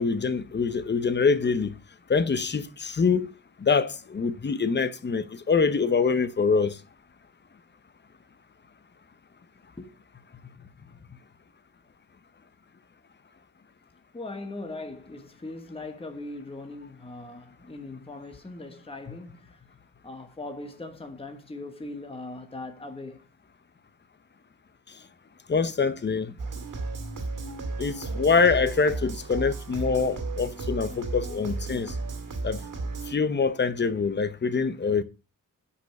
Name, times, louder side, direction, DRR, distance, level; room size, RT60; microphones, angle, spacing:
voice 1, 0.0-1.7 2.1-3.3 3.6-6.8 25.5-26.3 27.8-31.9 32.4-32.6 33.1-35.0, left 5 dB, 30° left, 0.8 m, -25 dB
voice 2, 14.1-19.6 20.0-23.3 26.3-26.5, left 2 dB, 15° left, 1.3 m, -40 dB
sound 1, 26.4-33.1, right 3 dB, 70° right, 2.3 m, -34 dB
9.8 x 5.4 x 5.9 m
wide cardioid pair, 135°, 33 cm